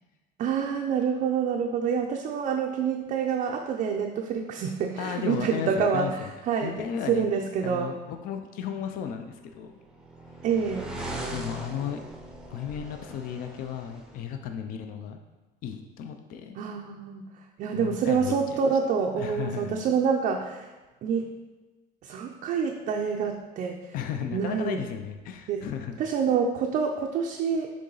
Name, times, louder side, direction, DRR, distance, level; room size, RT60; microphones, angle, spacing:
voice 1, 0.4-6.7 7.1-7.9 10.4-10.9 16.6-17.2 17.6-20.7 21.0-21.3 22.0-23.8 24.3-24.8 25.5-25.6 26.0-27.7, right 6 dB, 40° right, 1 dB, 0.4 m, -27 dB
voice 2, 5.0-6.3 6.6-7.3 7.6-9.7 11.3-12.0 12.5-15.2 15.6-16.6 17.7-18.8 19.2-19.8 23.9-26.0, left 8 dB, 50° left, 6 dB, 0.5 m, -34 dB
sound 1, 9.3-14.2, right 1 dB, 5° right, 0.6 m, -40 dB
6.8 x 3.8 x 3.9 m, 1.2 s
cardioid pair, 160°, 19 cm